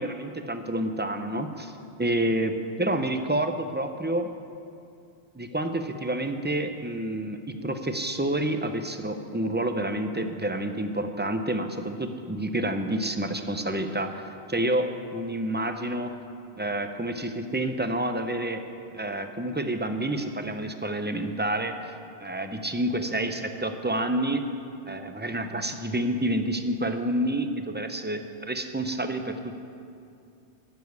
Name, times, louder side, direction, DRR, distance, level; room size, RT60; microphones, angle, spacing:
voice 1, 0.0-1.7 2.0-4.3 5.3-14.2 14.5-16.1 16.6-18.6 18.9-21.9 22.2-24.4 24.9-29.6, right 1 dB, 15° right, 7 dB, 0.5 m, -29 dB
13.0 x 7.4 x 9.5 m, 2.5 s
omnidirectional pair, 1.1 m